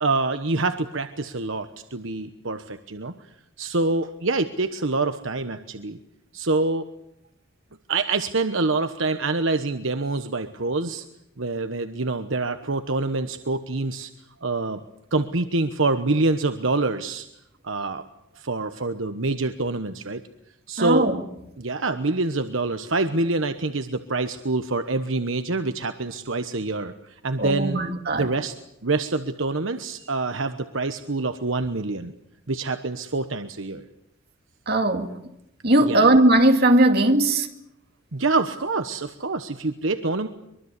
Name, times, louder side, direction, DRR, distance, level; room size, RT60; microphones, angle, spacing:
voice 1, 0.0-3.1 3.6-6.0 6.3-6.9 7.9-11.0 11.4-14.1 14.4-14.8 15.1-17.3 17.6-18.0 18.4-20.2 20.7-21.1 21.6-27.8 28.1-28.6 28.8-32.1 32.5-33.8 35.9-36.1 38.1-40.3, right 3 dB, 70° right, 1.2 m, -26 dB
voice 2, 20.8-21.2 27.4-28.3 34.7-35.2 35.6-37.5, right 1 dB, 50° right, 2.4 m, -19 dB
24.0 x 23.0 x 8.3 m
head